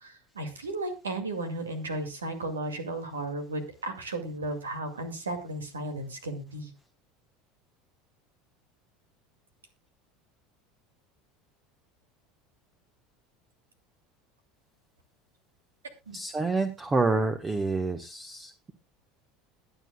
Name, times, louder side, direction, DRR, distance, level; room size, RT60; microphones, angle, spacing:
voice 1, 0.0-6.7 16.1-16.2, right 2 dB, 90° right, 7 dB, 2.2 m, -34 dB
voice 2, 16.1-18.7, right 3 dB, 20° right, 8 dB, 1.2 m, -28 dB
21.5 x 7.9 x 2.3 m, 0.26 s
hypercardioid pair, 75°, 0 cm